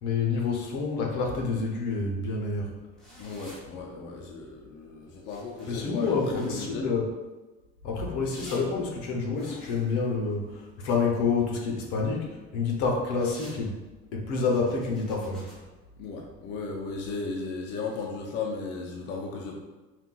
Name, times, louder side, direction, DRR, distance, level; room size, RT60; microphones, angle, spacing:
voice 1, 0.0-2.7 5.7-7.1 7.8-13.8 14.1-15.5, left 4 dB, 75° left, 0 dB, 0.7 m, -28 dB
sound 1, 3.0-3.6 5.3-6.7 8.2-8.6 9.3-11.3 13.1-13.6 14.3-15.6, equal, ahead, 0.7 m, -51 dB
voice 2, 3.2-6.9 16.0-19.6, left 4 dB, 40° left, -1 dB, 0.4 m, -36 dB
3.9 x 2.2 x 2.2 m, 1.2 s
cardioid pair, 145°, 30 cm